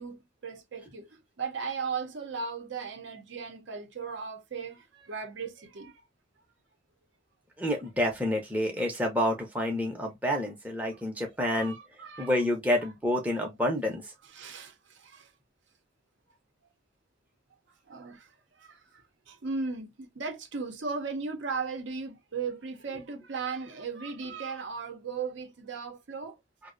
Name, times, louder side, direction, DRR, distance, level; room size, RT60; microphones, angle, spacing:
voice 1, 0.0-5.9 10.9-11.0 11.4-12.4 12.8-12.9 14.2-15.3 17.9-18.3 18.6-26.4, right 5 dB, 70° right, 0.6 m, -37 dB
voice 2, 7.6-11.8 12.2-14.0, left 1 dB, 10° right, 0.5 m, -28 dB
2.5 x 2.0 x 2.4 m
head